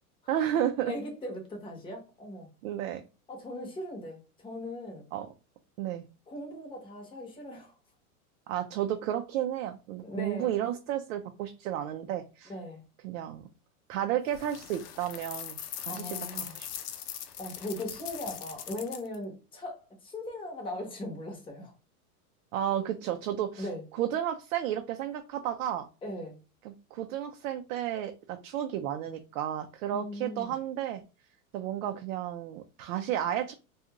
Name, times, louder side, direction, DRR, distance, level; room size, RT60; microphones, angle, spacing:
voice 1, 0.3-0.9 2.6-3.0 5.1-5.3 5.8-6.1 8.5-12.5 13.0-13.5 13.9-16.7 22.5-23.7 23.9-25.9 26.6-31.0 31.5-33.5, right 11 dB, 65° right, 0.5 m, -32 dB
voice 2, 0.9-2.5 3.3-5.0 6.3-7.7 10.0-10.5 12.5-12.8 15.9-16.5 17.4-21.7 23.6-23.8 26.0-26.4 29.9-30.5, left 1 dB, 10° left, 0.8 m, -39 dB
sound 1, 14.3-19.2, left 10 dB, 85° left, 0.6 m, -41 dB
2.4 x 2.4 x 2.9 m
supercardioid pair, 135°, 44 cm